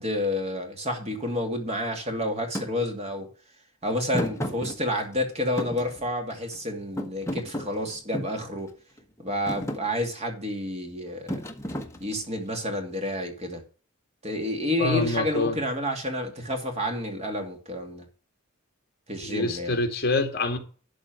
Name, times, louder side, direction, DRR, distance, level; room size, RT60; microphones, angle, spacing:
voice 1, 0.0-3.3 3.8-8.7 9.2-11.4 12.0-13.6 14.2-18.1 19.1-19.8, left 1 dB, 30° right, 2.5 m, -29 dB
Thump thud, 2.5-2.7 4.1-5.2 5.6-6.6 7.0-8.4 9.0-9.2 9.5-9.8 11.3-12.4, equal, 15° left, 1.2 m, -33 dB
voice 2, 14.8-15.6 19.2-20.6, left 3 dB, 45° left, 2.1 m, -26 dB
12.0 x 4.3 x 7.7 m
head